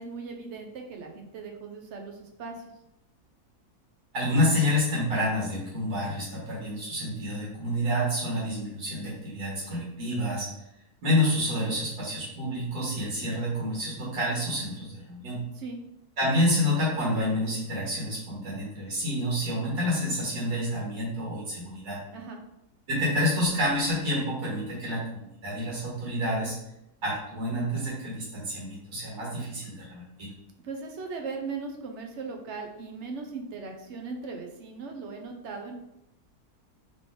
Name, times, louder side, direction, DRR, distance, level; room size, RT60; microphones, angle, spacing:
voice 1, 0.0-2.6 15.5-15.8 22.1-22.4 30.6-35.7, right 4 dB, 60° right, 3 dB, 0.8 m, -38 dB
voice 2, 4.1-10.5 11.0-15.5 16.2-22.0 22.9-26.6 27.0-30.3, left 1 dB, 85° right, -6 dB, 1.9 m, -28 dB
3.6 x 3.3 x 3.7 m, 0.83 s
omnidirectional pair, 1.6 m